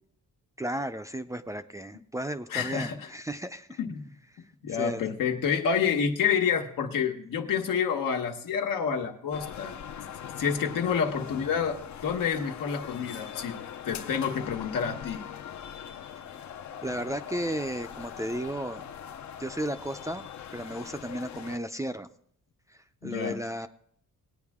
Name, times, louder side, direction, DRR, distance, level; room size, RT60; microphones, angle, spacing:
voice 1, 0.6-3.8 4.7-5.0 16.8-18.8 19.4-22.1 22.7-23.7, right 1 dB, 10° right, 9 dB, 0.4 m, -34 dB
voice 2, 2.5-3.1 3.8-4.0 4.6-9.8 10.4-13.6 13.8-15.2 23.0-23.4, left 7 dB, 85° left, 4 dB, 1.4 m, -28 dB
sound 1, 9.3-21.6, left 9 dB, 60° left, 0.7 m, -41 dB
19.0 x 9.3 x 3.6 m, 0.67 s
cardioid pair, 125°, 32 cm